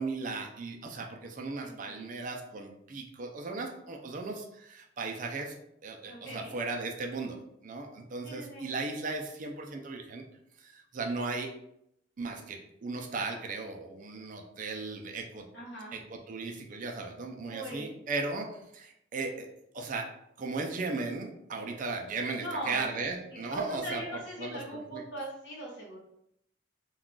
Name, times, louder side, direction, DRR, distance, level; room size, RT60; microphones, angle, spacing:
voice 1, 0.0-5.6 5.8-7.4 7.6-10.2 10.6-11.5 12.2-15.5 15.9-19.5 19.7-24.0 24.4-25.0, right 3 dB, 45° right, 2 dB, 0.4 m, -36 dB
voice 2, 1.6-2.1 6.1-6.5 8.2-8.6 15.5-15.9 17.4-17.9 22.3-26.0, right 1 dB, 65° left, -3 dB, 1.0 m, -40 dB
2.3 x 2.3 x 3.7 m, 0.76 s
head